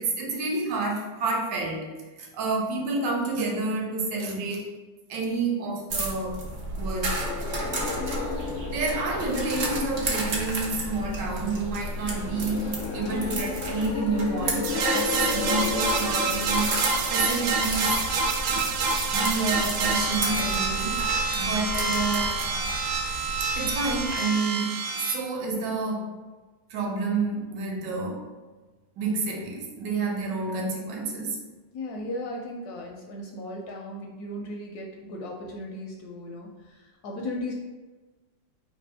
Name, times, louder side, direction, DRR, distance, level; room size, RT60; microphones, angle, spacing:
voice 1, 0.0-1.9 2.2-4.7 5.1-6.4 6.7-7.2 8.2-18.0 18.5-18.7 19.1-21.0 21.4-22.4 23.4-26.2 26.7-28.3 29.0-31.4, right 3 dB, 75° right, 0 dB, 1.4 m, -29 dB
sound 1, 5.9-24.1, right 2 dB, 55° right, 0.9 m, -33 dB
sound 2, 7.2-18.8, left 5 dB, 90° left, 0.6 m, -34 dB
sound 3, 14.6-25.1, right 4 dB, 90° right, 1.4 m, -27 dB
voice 2, 31.7-37.5, left 1 dB, 75° left, 0 dB, 0.9 m, -36 dB
3.3 x 2.6 x 4.6 m, 1.2 s
omnidirectional pair, 2.0 m